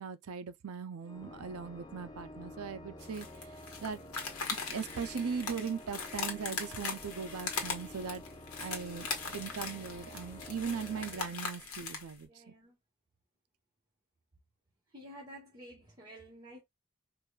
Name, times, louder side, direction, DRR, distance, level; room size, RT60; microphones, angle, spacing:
voice 1, 0.0-3.5 3.8-4.0 4.7-8.2 8.6-12.5, right 6 dB, 85° right, 0.5 m, -39 dB
Organ, 1.0-12.0, left 1 dB, 20° left, 0.7 m, -50 dB
sound 1, 3.0-12.1, left 5 dB, 85° left, 1.2 m, -40 dB
voice 2, 12.3-12.7 14.9-16.6, equal, 20° right, 1.5 m, -51 dB
4.8 x 2.6 x 2.3 m
head